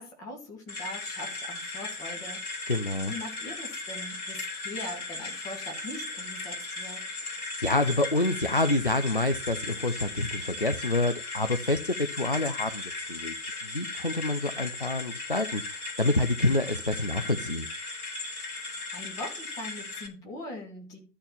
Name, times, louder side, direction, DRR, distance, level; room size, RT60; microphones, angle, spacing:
voice 1, 0.0-2.7 3.0-7.0 18.6-21.0, left 1 dB, 5° left, 2 dB, 1.2 m, -41 dB
sound 1, 0.7-20.1, left 2 dB, 60° left, 3.6 m, -37 dB
voice 2, 2.7-3.1 7.6-13.3 13.6-17.7, left 2 dB, 35° left, 10 dB, 0.4 m, -27 dB
12.5 x 4.5 x 6.9 m, 0.36 s
figure-of-eight pair, 140°, 49 cm